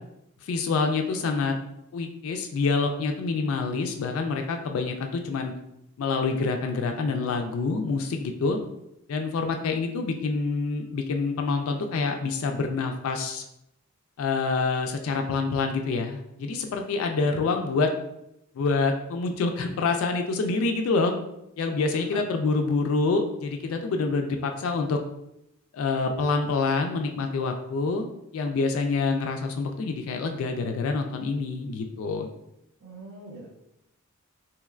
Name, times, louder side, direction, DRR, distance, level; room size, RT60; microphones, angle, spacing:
voice 1, 0.4-1.6 1.9-5.5 6.0-8.6 9.1-13.4 14.2-17.9 18.6-21.1 21.6-25.0 25.7-28.1 28.3-32.3, left 4 dB, 65° left, 5 dB, 0.3 m, -26 dB
voice 2, 17.2-17.6 21.9-22.2 32.8-33.7, right 2 dB, 65° right, -7 dB, 0.7 m, -45 dB
3.1 x 2.9 x 2.3 m, 0.83 s
head